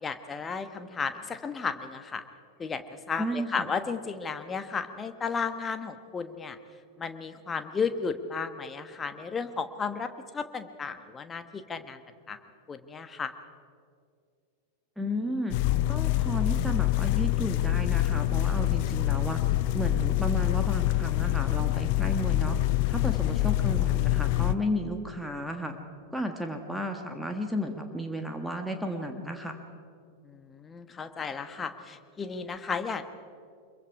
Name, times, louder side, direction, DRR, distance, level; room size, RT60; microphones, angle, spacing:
voice 1, 0.0-2.2 2.6-6.6 7.0-12.0 12.3-12.4 12.7-13.3 30.2-33.0, left 5 dB, 20° left, 9 dB, 1.2 m, -34 dB
voice 2, 3.2-3.7 15.0-15.6 15.9-19.4 19.7-22.6 22.9-25.7 26.1-29.6, equal, ahead, 4 dB, 1.6 m, -33 dB
sound 1, 15.5-24.6, left 15 dB, 45° left, 0.5 m, -26 dB
25.0 x 22.5 x 4.9 m, 2.3 s
figure-of-eight pair, 90°, 0 cm